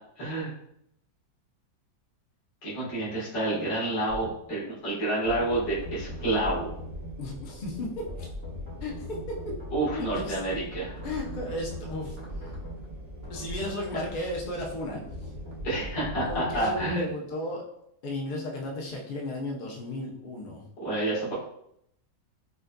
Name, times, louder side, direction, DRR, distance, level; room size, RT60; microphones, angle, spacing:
voice 1, 0.2-0.5 2.6-6.7 9.7-11.0 13.9-14.0 15.6-17.1 20.8-21.3, right 1 dB, 75° left, -9 dB, 2.4 m, -29 dB
sound 1, 4.1-4.3 5.2-7.1 8.1-9.9 10.9-12.8 13.2-13.8 15.1-17.0, left 1 dB, 15° left, 1.2 m, -40 dB
sound 2, 5.5-16.1, right 1 dB, 55° right, 0.7 m, -43 dB
voice 2, 7.2-8.3 8.8-9.1 9.9-10.3 11.0-12.5 13.3-15.3 16.3-17.6 18.0-20.6, left 1 dB, 60° left, -1 dB, 0.5 m, -34 dB
5.1 x 2.5 x 2.2 m, 0.75 s
omnidirectional pair, 1.9 m